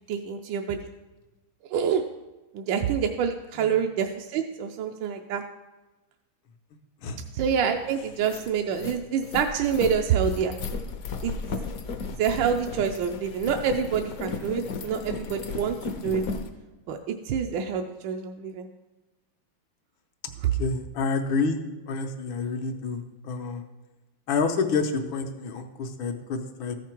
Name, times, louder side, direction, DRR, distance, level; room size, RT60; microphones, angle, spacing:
voice 1, 0.1-0.8 1.7-2.1 2.5-5.4 7.3-10.6 11.2-11.3 12.2-15.8 16.0-16.2 16.9-17.0 17.3-18.7, right 7 dB, 75° right, 4 dB, 1.2 m, -26 dB
sound 1, 7.6-7.7 8.1-16.5, left 4 dB, 65° left, 0.9 m, -35 dB
voice 2, 20.6-21.6 21.9-23.7 24.3-26.8, left 4 dB, 80° left, 5 dB, 1.6 m, -28 dB
14.0 x 5.9 x 4.5 m, 1.1 s
omnidirectional pair, 2.2 m